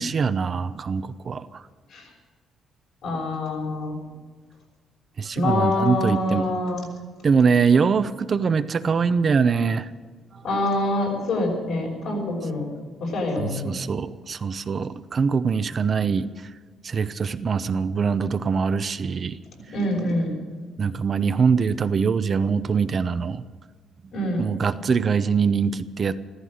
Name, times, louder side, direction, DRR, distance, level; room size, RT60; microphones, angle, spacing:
voice 1, 0.0-1.6 5.2-6.5 7.2-9.9 10.3-10.4 13.4-16.5 16.8-19.4 20.8-23.4 24.4-26.2, right 5 dB, 45° right, 11 dB, 0.7 m, -23 dB
voice 2, 3.0-4.0 5.3-6.8 10.4-12.7 13.0-13.8 19.7-20.3 24.1-24.5, left 2 dB, 75° left, -1 dB, 5.8 m, -25 dB
15.0 x 14.5 x 6.5 m, 1.5 s
cardioid pair, 90°, 0 cm